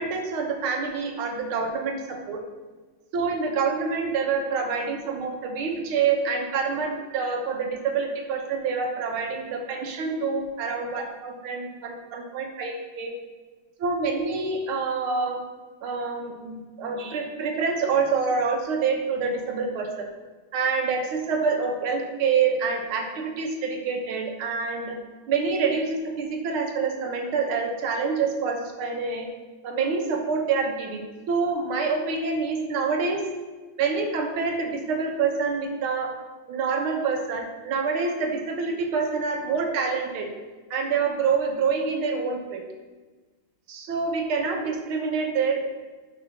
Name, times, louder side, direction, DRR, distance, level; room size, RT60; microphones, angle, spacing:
voice 1, 0.0-2.4 3.1-13.1 13.8-15.4 15.8-20.1 20.5-25.0 25.3-29.3 29.6-33.3 33.8-36.1 36.5-40.3 40.7-42.6 43.7-45.6, right 5 dB, 75° right, 2 dB, 1.9 m, -27 dB
5.9 x 5.1 x 6.3 m, 1.3 s
omnidirectional pair, 2.4 m